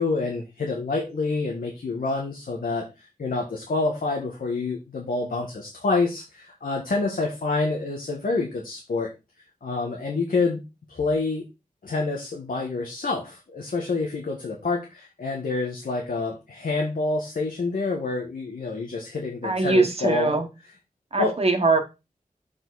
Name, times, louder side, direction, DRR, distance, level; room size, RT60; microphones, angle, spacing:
voice 1, 0.0-9.1 9.6-10.6 10.9-11.4 11.8-20.3 21.2-21.3, left 3 dB, 80° left, 0 dB, 1.6 m, -27 dB
voice 2, 19.4-20.5 21.1-21.8, right 3 dB, 45° right, 5 dB, 1.4 m, -21 dB
7.1 x 5.1 x 4.1 m, 0.26 s
wide cardioid pair, 90°, 14 cm